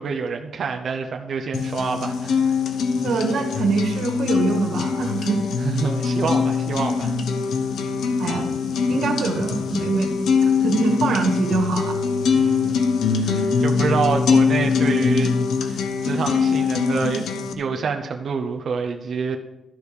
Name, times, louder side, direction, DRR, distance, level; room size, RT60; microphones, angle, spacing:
voice 1, 0.0-2.6 5.6-7.2 12.3-12.8 13.2-15.3 15.7-19.4, right 5 dB, 60° right, 3 dB, 0.7 m, -27 dB
sound 1, 1.5-17.5, left 5 dB, 90° left, 0.8 m, -22 dB
voice 2, 3.0-5.4 8.2-8.5 8.9-12.0 12.4-12.5, right 4 dB, 90° right, 1 dB, 1.8 m, -24 dB
13.0 x 5.2 x 4.9 m, 0.97 s
wide cardioid pair, 135°, 0 cm